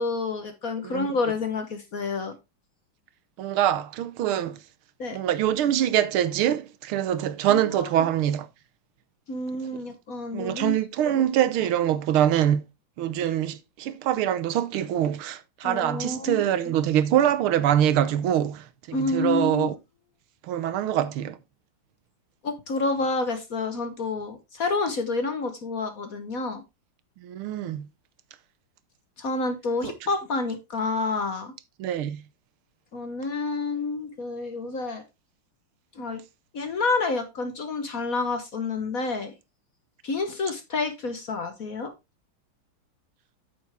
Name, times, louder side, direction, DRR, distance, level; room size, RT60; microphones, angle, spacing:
voice 1, 0.0-2.3 5.0-5.2 7.5-7.9 9.3-10.8 11.1-11.2 15.6-16.7 18.9-19.7 22.4-26.6 29.2-31.5 32.9-35.0 36.0-36.2 36.5-39.3 40.0-41.9, left 3 dB, 50° left, 1.3 m, -29 dB
voice 2, 3.4-4.6 5.1-8.5 10.3-12.6 13.0-19.8 20.5-21.4 27.2-27.9 29.8-30.0 31.8-32.2, right 11 dB, 75° right, 1.6 m, -24 dB
8.7 x 7.0 x 3.5 m
omnidirectional pair, 2.4 m